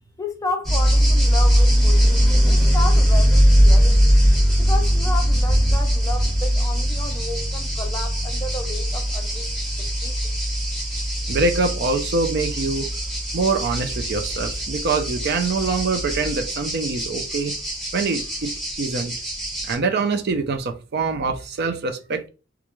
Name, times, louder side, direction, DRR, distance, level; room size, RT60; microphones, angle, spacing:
voice 1, 0.2-4.1 4.6-9.5 9.8-10.3, left 2 dB, 15° left, 0.4 m, -32 dB
sound 1, 0.6-19.7, equal, ahead, 1.1 m, -20 dB
voice 2, 11.3-12.9 13.3-17.6 17.9-19.1 19.6-22.2, right 3 dB, 55° right, 0.4 m, -24 dB
2.4 x 2.2 x 3.0 m
head